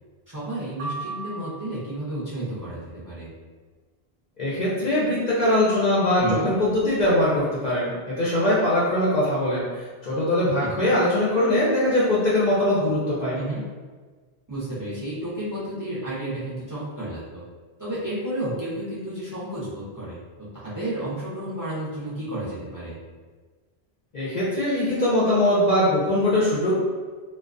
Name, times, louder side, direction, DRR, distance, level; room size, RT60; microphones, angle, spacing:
voice 1, 0.3-3.3 6.2-6.5 10.6-11.0 13.4-13.6 14.5-17.4 17.8-23.0, right 1 dB, 25° right, -10 dB, 0.6 m, -32 dB
sound 1, 0.8-2.1, right 3 dB, 90° right, 1.0 m, -36 dB
voice 2, 4.4-13.4 24.1-26.7, left 1 dB, 50° left, -8 dB, 0.5 m, -22 dB
2.3 x 2.2 x 2.4 m, 1.4 s
omnidirectional pair, 1.1 m